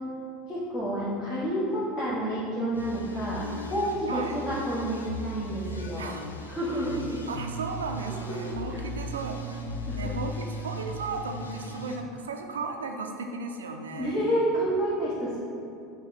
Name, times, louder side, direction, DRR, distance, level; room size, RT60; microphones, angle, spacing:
voice 1, 0.5-6.1 6.5-7.2 8.7-8.8 9.9-10.1 14.0-15.4, right 1 dB, 20° left, -10 dB, 1.1 m, -29 dB
sound 1, 2.7-12.0, equal, 85° left, 0.4 m, -37 dB
voice 2, 5.9-6.4 6.7-6.9 7.3-9.6 9.9-14.2, right 3 dB, 80° right, 4 dB, 0.4 m, -35 dB
5.8 x 2.2 x 4.1 m, 2.6 s
figure-of-eight pair, 75°, 0 cm